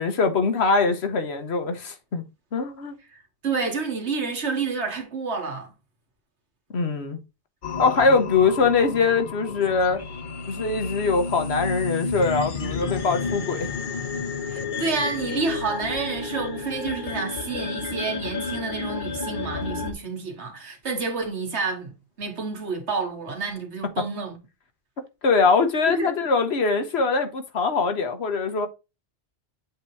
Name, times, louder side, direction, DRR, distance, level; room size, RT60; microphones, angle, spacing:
voice 1, 0.0-2.2 2.5-2.9 6.7-7.2 7.8-10.0 10.5-13.7 25.2-28.7, left 4 dB, 70° left, 1.3 m, -22 dB
voice 2, 3.1-5.7 14.5-24.4 25.9-26.2, right 4 dB, 85° right, 1.9 m, -29 dB
sound 1, 7.6-19.9, left 4 dB, 50° left, 0.9 m, -31 dB
7.8 x 2.9 x 4.6 m
omnidirectional pair, 1.1 m